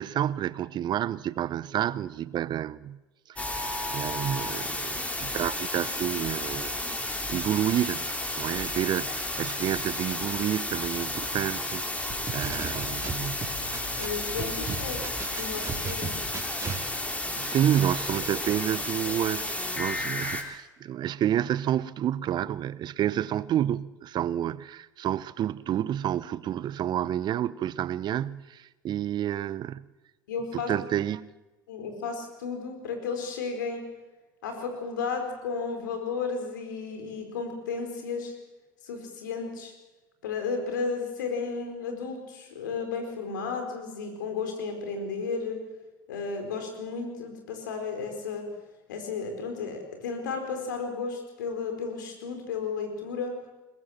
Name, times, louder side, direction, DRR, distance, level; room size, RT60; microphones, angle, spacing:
voice 1, 0.0-3.0 3.3-3.6 3.9-6.7 7.3-8.1 8.4-13.4 14.9-15.0 17.4-29.9 30.5-31.3, right 11 dB, 45° right, 0.8 m, -29 dB
sound 1, 3.4-20.4, left 1 dB, 15° left, 3.6 m, -32 dB
sound 2, 12.1-14.1 14.4-16.8, right 5 dB, 30° right, 4.0 m, -35 dB
voice 2, 14.0-15.0 15.3-16.2 30.3-30.7 31.7-33.9 34.4-38.3 38.8-39.7 40.2-45.7 46.1-48.5 48.9-53.4, left 5 dB, 80° left, 4.7 m, -33 dB
22.0 x 20.5 x 7.4 m
hypercardioid pair, 75°, 10 cm